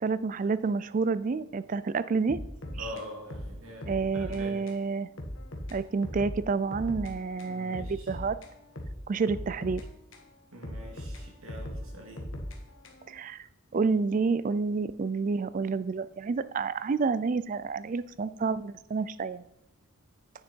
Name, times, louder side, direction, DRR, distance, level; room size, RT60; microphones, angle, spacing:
voice 1, 0.0-2.4 2.8-2.9 3.9-5.1 5.7-8.4 9.1-9.8 13.1-13.5 13.7-19.4, right 4 dB, 40° right, 16 dB, 0.3 m, -29 dB
sound 1, 2.3-4.4 4.7-4.8 5.2-7.1 7.4-10.3 10.6-13.2, left 1 dB, 65° left, 1.4 m, -40 dB
voice 2, 2.8-4.6 7.4-8.2 10.5-12.3, equal, 90° right, 1 dB, 2.5 m, -45 dB
9.8 x 6.6 x 4.4 m, 0.86 s
head